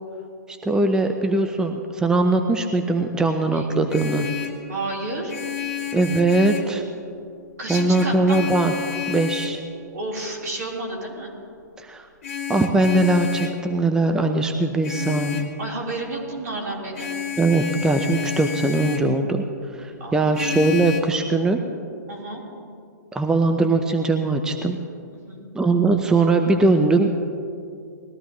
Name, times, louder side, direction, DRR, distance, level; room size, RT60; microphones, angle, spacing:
voice 1, 0.5-4.3 5.9-6.8 7.7-8.7 9.1-9.6 11.8-12.1 12.5-15.5 17.4-19.4 19.8-21.6 23.1-24.8 25.5-27.1, right 2 dB, 5° right, 5 dB, 0.6 m, -20 dB
Vehicle horn car horn honking, 3.7-4.7 5.3-6.8 7.7-9.6 12.2-13.6 14.8-15.6 16.9-19.1 20.3-21.0, left 9 dB, 50° left, 1.9 m, -30 dB
voice 2, 4.7-5.3 7.6-8.5 9.9-11.3 15.6-17.2 20.0-20.4 22.1-22.4 25.3-25.5, right 2 dB, 65° right, -3 dB, 4.0 m, -31 dB
20.5 x 14.0 x 3.1 m, 2.4 s
figure-of-eight pair, 120°, 10 cm